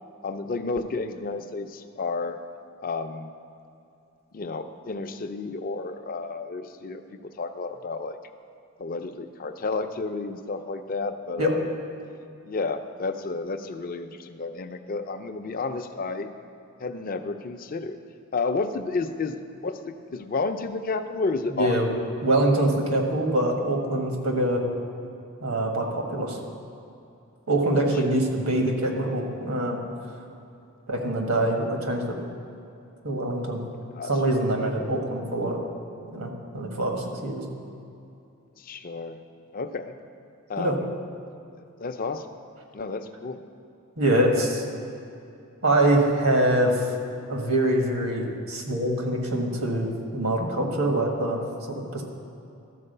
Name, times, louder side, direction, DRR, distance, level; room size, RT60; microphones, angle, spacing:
voice 1, 0.2-2.4 2.8-3.3 4.3-8.2 8.8-11.6 12.4-16.3 16.8-18.0 18.3-21.7 28.0-28.1 33.9-34.1 38.6-39.2 39.5-39.9 40.5-40.9 41.8-42.2 42.7-43.4, left 3 dB, 40° left, 8 dB, 0.5 m, -31 dB
voice 2, 21.5-21.9 22.2-24.6 25.4-26.4 27.5-29.8 30.9-32.2 33.0-33.6 34.0-35.6 36.1-37.4 40.6-40.8 44.0-44.6 45.6-46.9 47.3-52.0, right 1 dB, 80° right, 2 dB, 1.4 m, -24 dB
12.5 x 4.6 x 6.6 m, 2.7 s
head